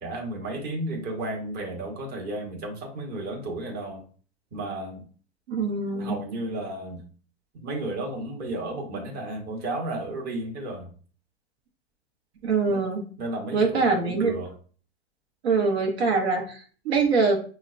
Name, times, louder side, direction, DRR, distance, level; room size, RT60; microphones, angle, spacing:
voice 1, 0.0-4.0 4.5-5.0 6.0-7.0 7.5-10.9 12.7-12.8 13.2-14.5, right 1 dB, 30° right, 1 dB, 1.0 m, -33 dB
voice 2, 5.5-6.2 12.4-13.0 13.5-14.3 15.4-17.4, right 4 dB, 75° right, 2 dB, 0.8 m, -23 dB
5.5 x 2.1 x 2.4 m, 0.42 s
hypercardioid pair, 115°, 32 cm